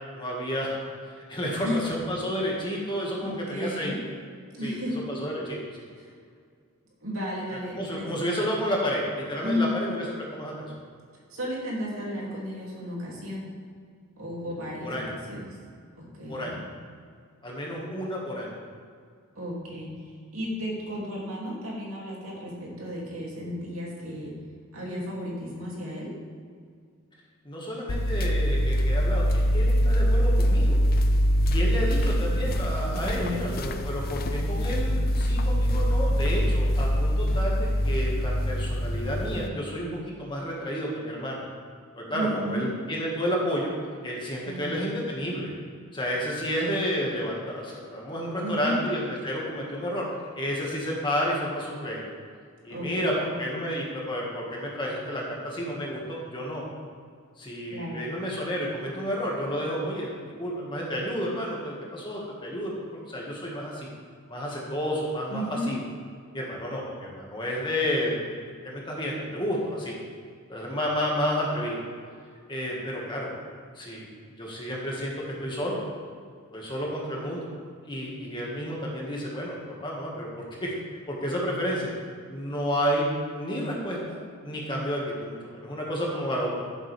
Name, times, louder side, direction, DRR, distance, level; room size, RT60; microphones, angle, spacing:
voice 1, 0.1-0.8 1.2-3.9 4.6-4.8 5.1-5.8 7.5-10.8 14.8-15.1 16.3-16.6 17.4-18.5 27.5-30.8 31.4-41.4 41.9-43.7 44.0-45.5 45.9-50.1 50.4-52.0 52.6-56.6 57.4-63.9 64.3-65.8 66.3-70.0 70.5-71.8 72.5-73.3 73.8-74.1 74.4-75.8 76.5-77.5 77.9-80.7 81.1-81.9 82.3-83.0 83.3-84.2 84.4-86.6, equal, 20° left, -3 dB, 1.9 m, -31 dB
voice 2, 3.2-4.0 4.5-4.9 5.9-6.1 7.0-8.1 9.4-9.9 11.3-13.5 14.2-15.6 16.0-16.6 19.4-24.3 24.7-26.1 32.9-33.6 34.1-34.8 42.1-42.6 44.4-44.8 48.4-48.8 52.7-53.3 57.7-58.1 65.3-65.7, equal, 70° right, -4 dB, 2.8 m, -33 dB
sound 1, 27.9-39.5, equal, 45° left, 0.5 m, -24 dB
14.5 x 7.4 x 3.5 m, 2.1 s
head